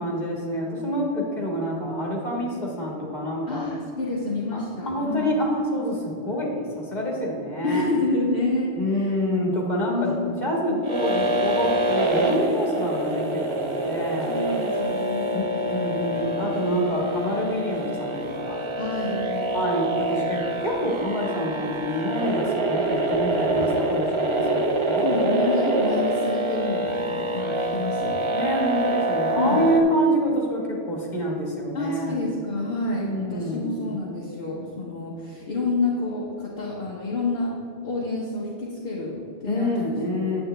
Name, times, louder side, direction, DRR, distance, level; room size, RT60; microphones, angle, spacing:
voice 1, 0.0-3.7 4.5-7.9 8.8-14.4 15.3-18.6 19.5-25.1 28.3-32.2 33.0-33.8 39.5-40.4, equal, 40° left, -2 dB, 1.9 m, -27 dB
voice 2, 3.5-5.2 7.6-9.1 9.9-10.4 10.7-10.8 14.3-15.4 18.8-19.5 25.0-28.2 29.4-29.7 31.7-37.5 37.8-39.9, left 2 dB, 55° left, -6 dB, 1.4 m, -28 dB
sound 1, 10.8-29.8, right 1 dB, 30° right, 0.7 m, -26 dB
9.4 x 8.6 x 3.3 m, 2.7 s
omnidirectional pair, 1.2 m